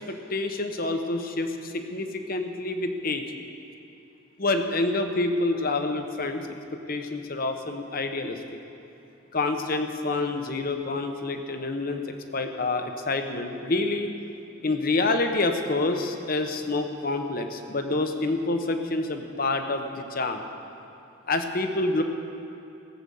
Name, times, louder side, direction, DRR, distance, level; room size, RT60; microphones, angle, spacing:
voice 1, 0.0-3.2 4.4-6.5 6.9-8.4 9.3-14.1 14.6-20.4 21.3-22.0, left 2 dB, 45° left, 6 dB, 1.0 m, -27 dB
17.0 x 7.9 x 7.0 m, 2.7 s
head